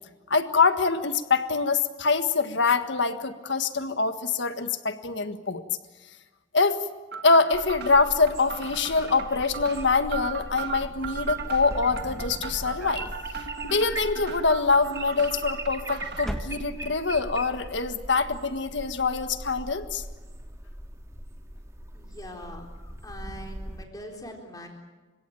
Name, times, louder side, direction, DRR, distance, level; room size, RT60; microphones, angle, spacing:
voice 1, 0.3-5.6 6.5-6.9 7.2-13.1 13.6-20.0, left 4 dB, 65° left, 9 dB, 1.6 m, -24 dB
sound 1, 7.1-16.3, right 7 dB, 55° right, 1.8 m, -38 dB
sound 2, 7.5-23.8, right 1 dB, 15° right, 2.0 m, -40 dB
sound 3, 12.1-13.2 13.7-14.4 15.3-15.8 16.2-17.1, equal, ahead, 1.7 m, -39 dB
voice 2, 21.9-24.7, equal, 20° left, 2 dB, 4.1 m, -42 dB
30.0 x 17.0 x 9.1 m, 1.3 s
head